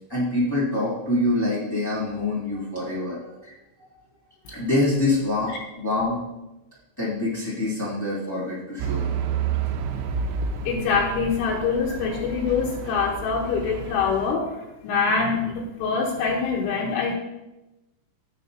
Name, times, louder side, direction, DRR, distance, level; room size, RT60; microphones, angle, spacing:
voice 1, 0.1-3.5 4.5-6.2 7.0-9.1, left 2 dB, 15° left, -9 dB, 0.9 m, -25 dB
Truck / Idling, 8.8-14.3, right 6 dB, 85° right, 2.7 m, -30 dB
voice 2, 10.6-17.2, left 5 dB, 80° left, -2 dB, 3.4 m, -25 dB
14.5 x 6.2 x 2.8 m, 0.99 s
omnidirectional pair, 5.7 m